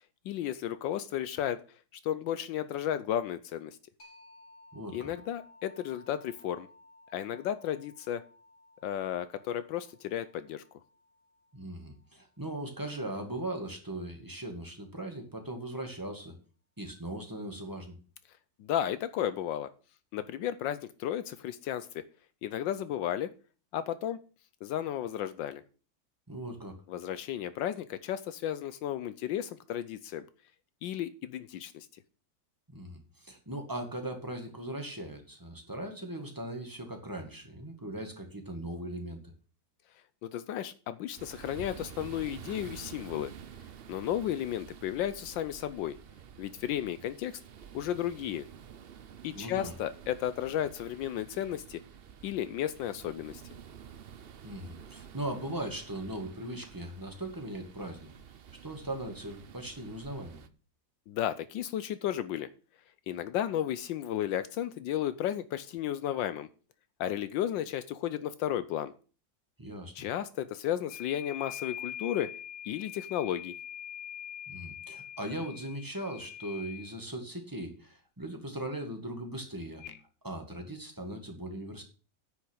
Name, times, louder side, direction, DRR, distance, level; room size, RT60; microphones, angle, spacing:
voice 1, 0.2-1.6 2.0-3.8 4.9-6.7 7.1-8.2 8.8-10.6 18.6-19.7 20.1-22.0 22.4-23.3 23.7-24.2 24.6-25.6 26.9-30.3 30.8-31.9 40.2-43.3 43.9-46.0 46.4-47.3 47.7-48.4 49.2-51.8 52.2-53.4 61.1-62.5 63.1-66.5 67.0-68.9 69.9-72.3 72.6-73.5, left 11 dB, 80° left, 14 dB, 1.4 m, -33 dB
sound 1, 4.0-13.4, left 2 dB, 30° left, 3.3 m, -59 dB
voice 2, 4.7-5.1 11.5-16.4 16.8-18.0 26.3-26.8 32.7-39.2 49.3-49.8 54.4-58.1 58.6-60.4 69.6-69.9 74.5-79.8 80.2-81.8, right 1 dB, 10° right, 3 dB, 2.0 m, -39 dB
sound 2, 41.2-60.5, right 8 dB, 70° right, 0.5 m, -50 dB
sound 3, 70.9-77.0 79.8-80.0, left 10 dB, 60° left, 0.9 m, -43 dB
9.8 x 6.7 x 6.4 m, 0.37 s
omnidirectional pair, 2.0 m